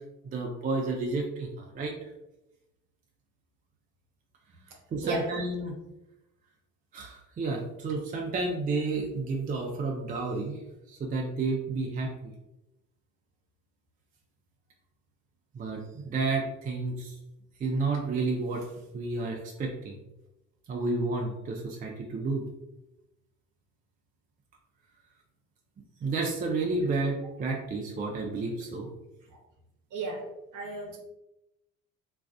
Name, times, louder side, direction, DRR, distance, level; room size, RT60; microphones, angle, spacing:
voice 1, 0.2-1.9 4.9-5.8 6.9-10.6 10.9-12.3 15.5-17.2 17.6-18.7 18.9-20.0 20.7-22.4 26.0-28.9, right 3 dB, 20° right, 0 dB, 0.4 m, -31 dB
voice 2, 29.9-31.0, right 3 dB, 50° right, 1 dB, 0.8 m, -34 dB
2.4 x 2.3 x 2.2 m, 0.93 s
hypercardioid pair, 65°, 40 cm